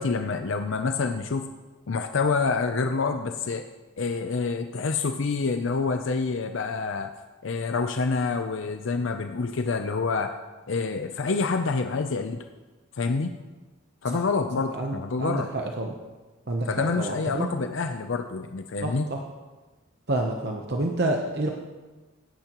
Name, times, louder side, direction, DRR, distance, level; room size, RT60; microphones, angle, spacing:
voice 1, 0.0-1.5 1.9-3.6 4.0-7.1 7.4-10.3 10.7-12.4 13.0-13.3 14.0-15.5 16.7-19.1, left 4 dB, 65° left, 7 dB, 0.5 m, -27 dB
voice 2, 14.7-15.9 16.5-17.5 18.8-19.2 20.1-21.5, right 2 dB, 50° right, 2 dB, 0.9 m, -29 dB
16.5 x 10.5 x 3.0 m, 1.2 s
head